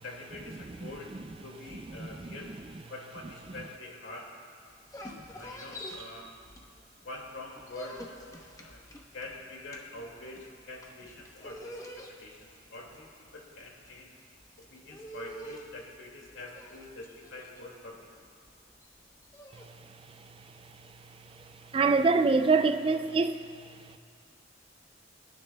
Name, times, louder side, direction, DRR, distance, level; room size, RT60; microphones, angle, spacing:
voice 1, 0.0-1.1 1.4-2.5 2.9-4.3 5.3-6.3 7.0-8.0 8.6-8.8 9.1-14.1 14.7-18.3, left 2 dB, 85° left, 2.2 m, -45 dB
sound 1, 4.7-7.0 7.3-19.7, equal, 15° left, 0.8 m, -47 dB
voice 2, 21.7-23.4, right 4 dB, 30° right, 0.3 m, -23 dB
28.0 x 9.7 x 2.3 m
head